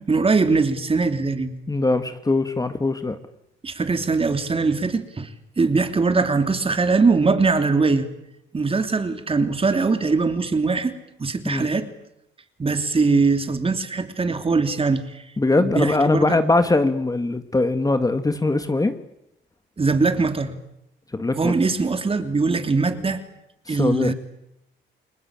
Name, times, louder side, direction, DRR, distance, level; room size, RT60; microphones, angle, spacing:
voice 1, 0.0-1.5 3.6-5.3 5.6-8.1 8.5-11.9 12.6-15.2 15.6-16.4 19.8-20.5 21.4-23.2 23.7-24.1, right 4 dB, 30° right, 8 dB, 3.2 m, -21 dB
voice 2, 1.7-3.2 11.4-11.7 15.4-18.9 21.1-21.5 23.7-24.1, left 2 dB, 20° left, 9 dB, 1.9 m, -21 dB
29.5 x 21.0 x 9.0 m, 0.83 s
cardioid pair, 90°, 20 cm